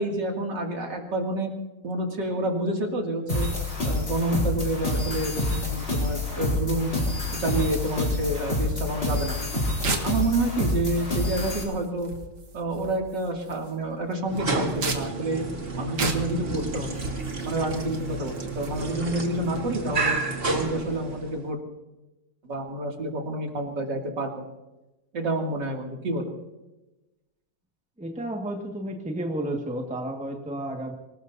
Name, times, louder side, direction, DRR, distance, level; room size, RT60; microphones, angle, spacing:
voice 1, 0.0-1.5 1.8-3.5 3.8-7.0 7.3-9.4 9.8-12.1 12.5-15.4 15.8-16.9 17.4-20.2 20.5-21.6 22.4-24.5 25.1-26.3, right 2 dB, 55° right, 1 dB, 3.1 m, -28 dB
sound 1, 3.3-11.6, left 2 dB, 30° left, 4.0 m, -27 dB
sound 2, 9.1-19.6, right 3 dB, 80° right, 2.8 m, -36 dB
sound 3, 14.2-21.5, right 3 dB, 30° right, 1.7 m, -31 dB
voice 2, 28.0-30.9, right 1 dB, 5° right, 2 dB, 1.6 m, -32 dB
25.0 x 19.5 x 2.7 m, 1.0 s
omnidirectional pair, 2.2 m